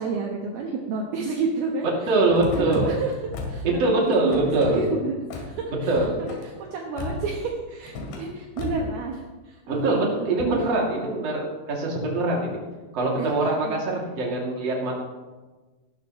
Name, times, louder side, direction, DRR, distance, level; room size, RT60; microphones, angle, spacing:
voice 1, 0.0-2.1 2.4-3.6 4.0-10.6 13.2-13.8, right 4 dB, 70° right, 0 dB, 3.0 m, -30 dB
voice 2, 2.1-3.0 3.8-4.8 5.9-6.2 9.7-12.6 12.9-15.0, right 2 dB, 40° right, -2 dB, 3.3 m, -23 dB
Car / Slam, 2.4-2.8 3.3-3.8 4.1-4.7 5.3-5.5 5.9-6.4 7.0-7.4 7.8-8.3 8.6-9.0, left 2 dB, 85° left, 4.3 m, -35 dB
19.0 x 12.0 x 3.2 m, 1.3 s
omnidirectional pair, 5.0 m